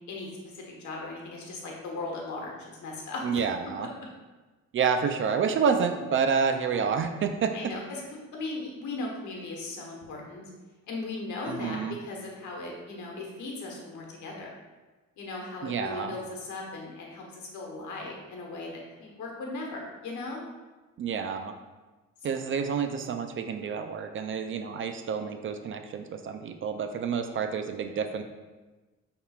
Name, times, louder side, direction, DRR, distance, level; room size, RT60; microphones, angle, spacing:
voice 1, 0.1-3.4 7.5-8.0 8.3-10.4 10.9-14.5 15.2-20.4 22.3-22.5, left 2 dB, 75° left, 0 dB, 1.1 m, -38 dB
voice 2, 3.2-3.9 4.7-7.5 11.5-12.0 15.6-16.2 21.0-21.5 22.2-28.2, right 6 dB, 45° right, 7 dB, 0.4 m, -29 dB
5.5 x 3.6 x 2.4 m, 1.2 s
cardioid pair, 90°, 30 cm